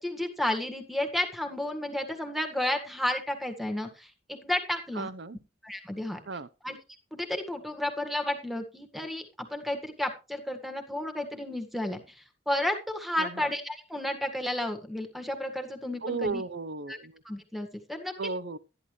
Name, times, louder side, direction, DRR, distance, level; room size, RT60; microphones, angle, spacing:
voice 1, 0.0-5.1 5.6-6.2 6.6-6.8 7.1-16.4 16.9-17.0 17.3-18.1, left 1 dB, ahead, 1.8 m, -32 dB
voice 2, 5.0-5.4 6.3-6.5 13.2-13.5 16.0-17.2 18.2-18.6, right 3 dB, 60° right, 0.8 m, -34 dB
13.0 x 11.0 x 3.2 m
head